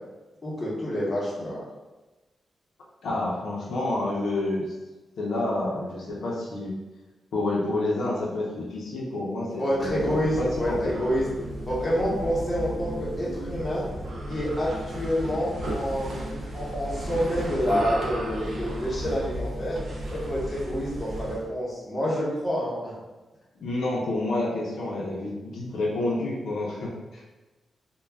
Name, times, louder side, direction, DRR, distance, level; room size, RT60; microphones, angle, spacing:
voice 1, 0.4-1.6 9.6-11.2 11.7-13.8 14.3-19.8 20.1-22.9, equal, 25° left, -6 dB, 0.9 m, -28 dB
voice 2, 3.0-4.7 5.2-6.7 7.3-10.0 10.4-10.9 23.6-27.2, left 2 dB, 85° left, -4 dB, 0.6 m, -29 dB
sound 1, 9.8-21.5, right 1 dB, 55° right, 0.5 m, -34 dB
2.3 x 2.1 x 3.3 m, 1.1 s
wide cardioid pair, 125°, 0 cm